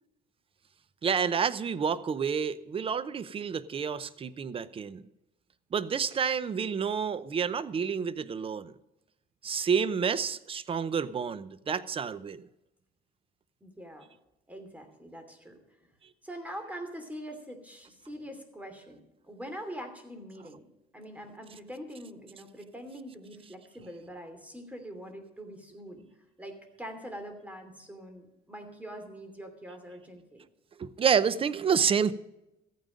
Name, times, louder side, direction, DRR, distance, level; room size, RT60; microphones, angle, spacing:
voice 1, 1.0-5.0 5.7-8.7 9.4-12.4 30.8-32.1, right 6 dB, 35° right, 16 dB, 0.7 m, -29 dB
voice 2, 13.6-14.1 14.5-15.9 16.2-20.7 20.9-26.1 26.4-30.4, equal, 10° right, 6 dB, 2.8 m, -44 dB
14.5 x 9.3 x 5.2 m, 0.90 s
cardioid pair, 110°, 17 cm